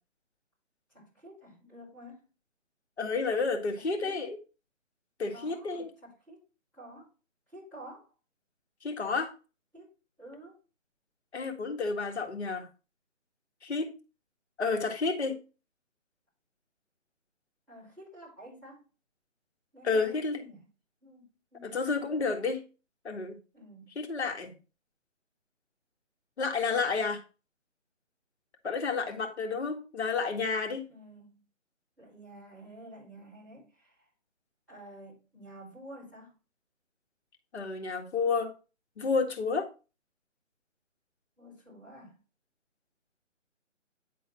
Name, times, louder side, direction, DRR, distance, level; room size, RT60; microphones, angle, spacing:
voice 1, 0.9-2.2 3.8-4.2 5.3-6.4 6.7-7.1 7.5-8.1 9.7-9.9 10.2-10.6 17.7-18.8 19.7-20.7 21.0-22.3 23.5-23.9 30.9-31.4 32.0-34.1 34.7-36.3 41.4-42.2, right 1 dB, ahead, -9 dB, 3.6 m, -50 dB
voice 2, 3.0-4.4 5.2-5.9 8.8-9.3 11.3-12.7 13.6-13.9 14.6-15.4 19.8-20.4 21.6-22.6 23.0-23.4 23.9-24.5 26.4-27.2 28.6-30.8 37.5-38.5 39.0-39.7, left 4 dB, 60° left, 3 dB, 1.8 m, -30 dB
9.6 x 4.0 x 4.3 m, 0.32 s
figure-of-eight pair, 155°, 38 cm